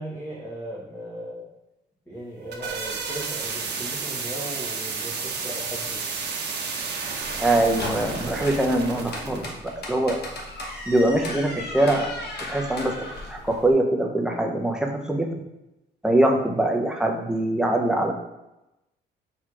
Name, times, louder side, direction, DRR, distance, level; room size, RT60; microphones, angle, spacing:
voice 1, 0.0-1.5 2.1-6.1, right 1 dB, 10° left, -6 dB, 1.1 m, -37 dB
sound 1, 2.2-9.5, right 5 dB, 60° right, 0.8 m, -32 dB
sound 2, 7.2-13.7, left 2 dB, 55° left, 1.0 m, -36 dB
voice 2, 7.4-10.2 10.9-12.1 12.5-12.9 13.3-15.3 16.0-18.1, right 1 dB, 5° right, 1 dB, 0.6 m, -23 dB
4.5 x 4.3 x 2.4 m, 0.95 s
cardioid pair, 90°, 20 cm